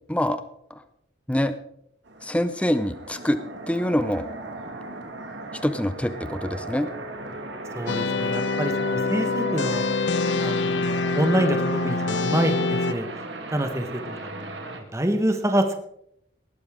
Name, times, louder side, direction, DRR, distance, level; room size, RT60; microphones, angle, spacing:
voice 1, 0.1-0.4 0.7-0.8 1.3-1.5 2.2-3.4 3.7-4.3 5.6-6.9, left 1 dB, 5° left, 11 dB, 0.6 m, -25 dB
sound 1, 2.1-14.8, right 2 dB, 70° right, 2.0 m, -37 dB
voice 2, 7.7-9.8 10.4-13.1 13.5-15.8, right 1 dB, 15° right, 6 dB, 1.2 m, -27 dB
sound 2, 7.9-12.9, left 3 dB, 75° left, 0.6 m, -25 dB
19.0 x 12.5 x 3.7 m, 0.73 s
head